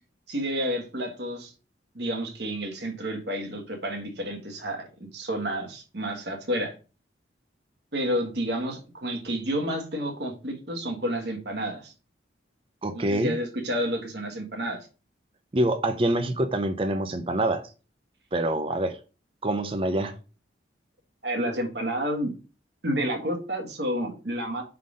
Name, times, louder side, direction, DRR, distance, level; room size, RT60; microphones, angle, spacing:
voice 1, 0.3-1.5 1.9-6.7 7.9-11.9 12.9-14.9 21.2-22.3 22.8-24.6, equal, 60° right, 1.5 m, -30 dB
voice 2, 12.8-13.4 15.5-17.7 18.3-19.0 19.4-20.1, right 1 dB, 30° right, 0.5 m, -26 dB
5.8 x 3.8 x 4.9 m
head